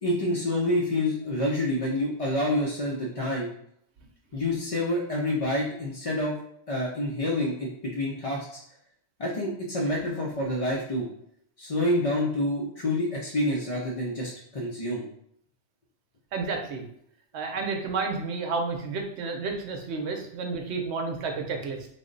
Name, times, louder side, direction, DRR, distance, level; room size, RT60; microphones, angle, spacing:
voice 1, 0.0-3.5 4.3-6.3 6.7-8.6 9.2-11.1 11.6-15.1, left 1 dB, 50° left, -4 dB, 0.4 m, -28 dB
voice 2, 16.3-16.9 17.3-21.9, right 4 dB, 70° right, 3 dB, 0.9 m, -31 dB
3.4 x 2.0 x 3.7 m, 0.70 s
omnidirectional pair, 1.2 m